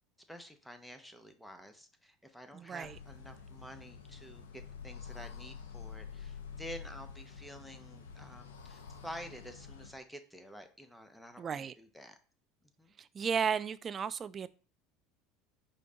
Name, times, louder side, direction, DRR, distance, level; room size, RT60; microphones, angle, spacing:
voice 1, 0.3-12.2 12.8-12.9, equal, 5° left, 0.8 m, -50 dB
voice 2, 2.5-3.0 11.4-11.7 13.0-14.5, right 7 dB, 35° right, 0.3 m, -34 dB
sound 1, 2.8-10.0, left 6 dB, 85° left, 0.6 m, -48 dB
5.1 x 2.2 x 3.8 m
hypercardioid pair, 80°, 0 cm